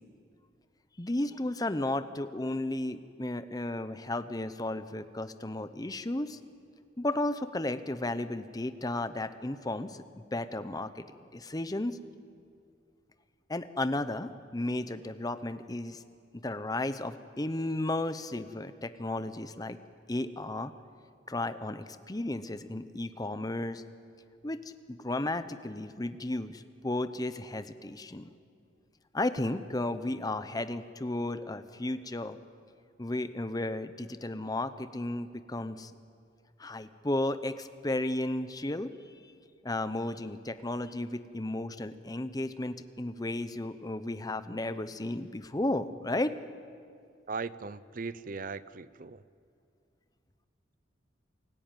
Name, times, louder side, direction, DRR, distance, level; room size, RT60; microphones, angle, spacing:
voice 1, 1.0-6.4 7.0-11.0 11.3-12.0 13.5-16.0 16.3-19.8 20.1-20.7 21.3-23.8 24.4-28.3 29.1-32.4 33.0-35.9 36.6-39.2 39.6-46.3, left 1 dB, 20° left, 12 dB, 0.8 m, -34 dB
voice 2, 47.3-49.2, right 4 dB, 50° right, 17 dB, 0.6 m, -38 dB
28.0 x 14.5 x 9.1 m, 2.4 s
head